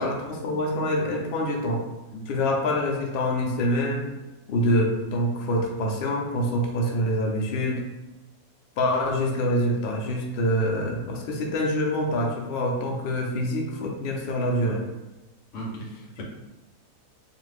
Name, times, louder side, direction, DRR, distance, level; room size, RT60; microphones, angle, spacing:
voice 1, 0.0-1.8 2.3-4.1 4.5-7.8 8.8-14.8 16.2-16.3, equal, 85° left, 0 dB, 0.5 m, -25 dB
voice 2, 15.5-16.2, right 1 dB, 65° left, -2 dB, 0.9 m, -37 dB
2.5 x 2.4 x 3.2 m, 1.0 s
omnidirectional pair, 1.6 m